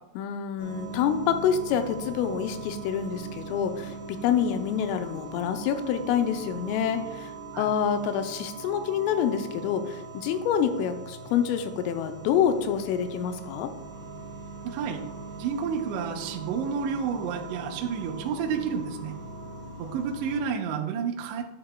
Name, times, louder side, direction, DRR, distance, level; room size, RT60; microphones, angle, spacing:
voice 1, 0.2-7.3 7.6-13.7, left 8 dB, 90° left, 8 dB, 3.2 m, -27 dB
sound 1, 0.6-20.4, right 3 dB, 40° right, 1.9 m, -41 dB
voice 2, 14.6-15.0 15.4-19.1 19.8-21.4, right 6 dB, 80° right, 2 dB, 2.7 m, -30 dB
10.5 x 8.7 x 2.2 m, 1.0 s
omnidirectional pair, 5.7 m